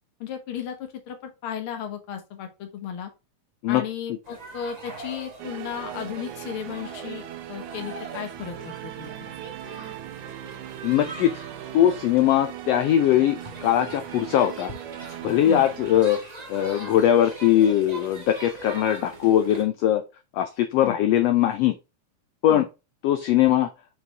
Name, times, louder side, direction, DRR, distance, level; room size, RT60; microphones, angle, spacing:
voice 1, 0.2-3.1 3.7-9.3 15.4-15.7 20.8-21.0 22.5-22.7, left 9 dB, 55° left, 1.7 m, -35 dB
sound 1, 4.2-19.6, right 2 dB, 30° right, 0.7 m, -42 dB
sound 2, 5.4-16.0, right 13 dB, 80° right, 2.1 m, -39 dB
voice 2, 10.8-11.4 11.7-14.7 15.2-16.2 16.5-20.0 20.3-21.8 22.4-22.6 23.0-23.7, left 11 dB, 90° left, 1.4 m, -21 dB
6.8 x 4.2 x 3.3 m
omnidirectional pair, 3.5 m